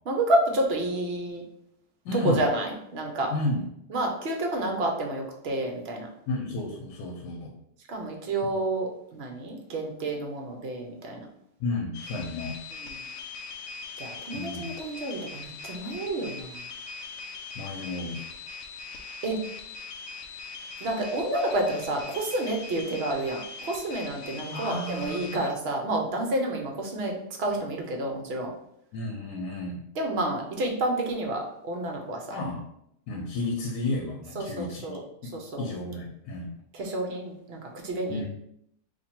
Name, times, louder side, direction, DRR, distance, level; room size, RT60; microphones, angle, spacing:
voice 1, 0.1-1.4 2.1-3.3 3.9-6.1 7.9-11.3 12.8-12.9 14.0-16.6 19.2-19.4 20.8-28.5 30.0-32.4 34.3-35.0 35.3-35.7 36.7-38.3, right 1 dB, 60° right, 1 dB, 0.7 m, -29 dB
voice 2, 2.0-2.4 3.3-3.7 6.3-7.6 11.6-12.6 14.3-14.7 17.5-18.2 24.5-25.4 28.9-29.9 32.3-32.7 33.1-36.5 38.1-38.3, left 2 dB, 90° left, 1 dB, 1.2 m, -32 dB
sound 1, 11.9-25.5, left 4 dB, 70° left, 0.8 m, -41 dB
2.9 x 2.6 x 4.2 m, 0.75 s
omnidirectional pair, 1.7 m